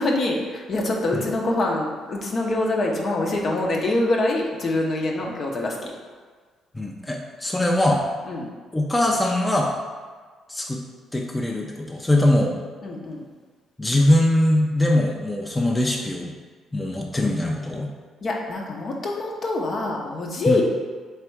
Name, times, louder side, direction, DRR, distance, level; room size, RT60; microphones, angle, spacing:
voice 1, 0.0-5.9 8.3-8.5 12.8-13.2 18.2-20.6, left 2 dB, 55° left, -1 dB, 0.9 m, -25 dB
voice 2, 6.7-8.0 8.7-9.8 10.5-10.8 11.1-12.6 13.8-16.3 16.7-17.9 20.5-20.6, left 1 dB, 15° left, 0 dB, 0.6 m, -22 dB
3.4 x 3.3 x 4.6 m, 1.5 s
supercardioid pair, 60°, 0 cm